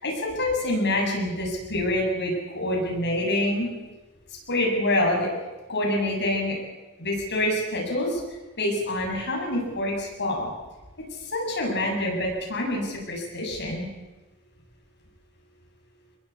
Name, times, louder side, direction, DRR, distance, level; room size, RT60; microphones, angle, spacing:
voice 1, 0.0-3.7 4.5-5.3 5.7-6.5 7.0-8.2 8.6-10.5 11.3-13.9, left 1 dB, 50° left, -1 dB, 7.8 m, -26 dB
23.0 x 21.5 x 8.6 m, 1.1 s
head